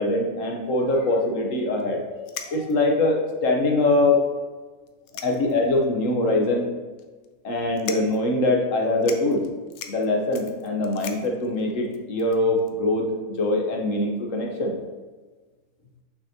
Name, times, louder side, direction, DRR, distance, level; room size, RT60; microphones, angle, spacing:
voice 1, 0.0-4.2 5.2-6.7 7.4-9.4 9.9-14.7, left 2 dB, 65° left, 1 dB, 1.3 m, -23 dB
sound 1, 1.8-1.9 2.3-2.9 3.6-3.7 3.9-4.0 4.9-5.7 6.1-6.2 7.0-7.3 7.7-8.3 8.7-8.8 9.0-12.7, left 8 dB, 80° left, 1.1 m, -39 dB
6.3 x 6.0 x 2.8 m, 1.3 s
omnidirectional pair, 1.5 m